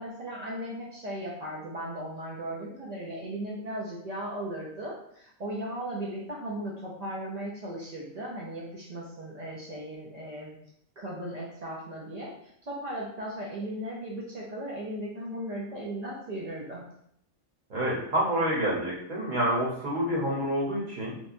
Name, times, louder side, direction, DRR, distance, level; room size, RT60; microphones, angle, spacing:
voice 1, 0.0-10.6 11.0-16.8, right 1 dB, 90° right, -4 dB, 0.3 m, -37 dB
voice 2, 17.7-21.2, equal, 45° right, -5 dB, 0.9 m, -28 dB
3.3 x 2.1 x 2.5 m, 0.72 s
omnidirectional pair, 1.3 m